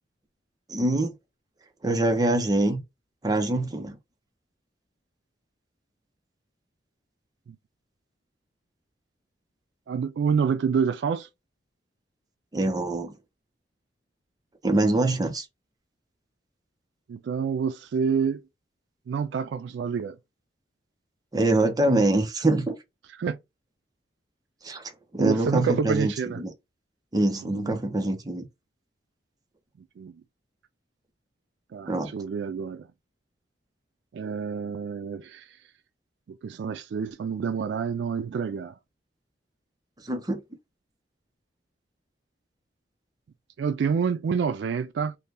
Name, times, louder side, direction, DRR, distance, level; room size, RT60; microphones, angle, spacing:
voice 1, 0.7-1.1 1.8-2.8 3.2-4.0 12.5-13.1 14.6-15.5 21.3-22.7 24.6-26.5 27.1-28.5 31.9-32.1 40.0-40.4, right 2 dB, 20° right, 0.6 m, -24 dB
voice 2, 9.9-11.3 17.1-18.4 19.1-20.2 23.2-23.4 25.2-26.4 27.4-27.8 30.0-30.1 31.7-32.9 34.1-35.5 36.3-38.8 43.6-45.2, right 6 dB, 75° right, 0.3 m, -28 dB
2.7 x 2.2 x 3.2 m
head